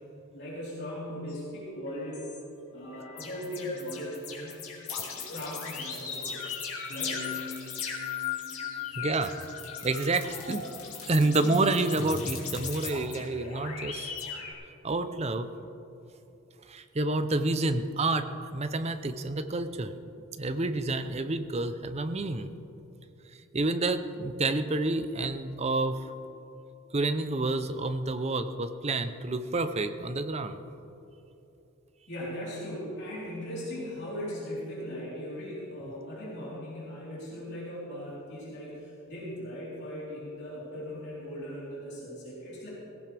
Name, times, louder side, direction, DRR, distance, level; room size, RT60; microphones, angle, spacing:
voice 1, 0.3-2.3 2.7-4.6 5.3-6.4 6.9-7.2 32.1-42.7, equal, 50° left, -7 dB, 3.9 m, -38 dB
sound 1, 1.3-1.4 1.9-2.4 2.9-14.5, left 6 dB, 70° left, 2.6 m, -37 dB
voice 2, 9.0-9.3 9.8-10.7 11.1-14.2 14.8-15.5 16.7-18.3 18.5-19.9 20.4-22.5 23.5-26.0 26.9-30.6, right 2 dB, 30° right, 9 dB, 0.6 m, -29 dB
18.0 x 16.5 x 3.4 m, 3.0 s
head